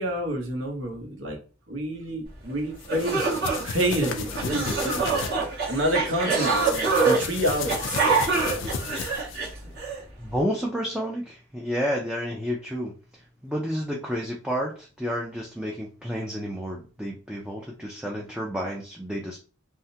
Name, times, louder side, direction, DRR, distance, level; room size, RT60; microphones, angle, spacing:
voice 1, 0.0-1.4 1.7-5.1 5.7-6.7 7.0-8.1 8.5-8.9, right 1 dB, 65° right, 1 dB, 1.1 m, -29 dB
sound 1, 2.5-2.6 2.9-10.0, right 4 dB, 50° right, 1.5 m, -25 dB
sound 2, 2.8-5.3 6.3-9.5, left 6 dB, 60° left, 0.4 m, -34 dB
voice 2, 10.2-13.0 13.4-19.4, equal, 5° right, -2 dB, 0.4 m, -30 dB
3.5 x 2.1 x 2.7 m, 0.36 s
head